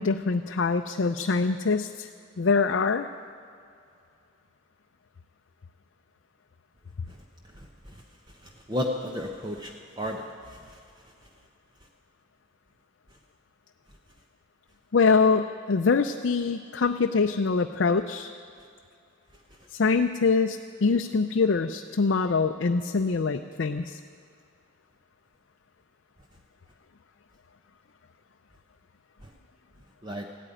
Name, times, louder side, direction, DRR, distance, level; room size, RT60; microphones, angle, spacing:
voice 1, 0.0-2.1 2.4-3.1 14.9-18.3 19.7-24.0, left 4 dB, 60° left, 5 dB, 0.5 m, -24 dB
voice 2, 8.7-10.6 30.0-30.3, left 1 dB, 20° right, 1 dB, 0.9 m, -32 dB
15.5 x 9.1 x 10.0 m, 2.4 s
head